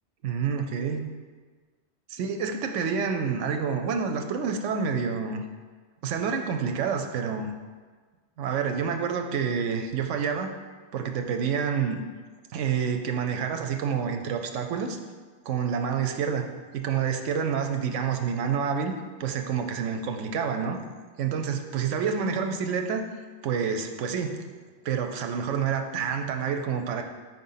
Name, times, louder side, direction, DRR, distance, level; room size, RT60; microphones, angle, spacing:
voice 1, 0.2-1.0 2.1-5.4 6.0-7.5 8.4-10.5 10.9-12.0 12.5-15.0 15.5-16.4 16.7-18.9 19.2-20.8 21.2-23.0 23.4-24.4 24.8-27.0, right 6 dB, 90° right, 5 dB, 1.0 m, -28 dB
4.9 x 3.9 x 5.6 m, 1.4 s
omnidirectional pair, 1.2 m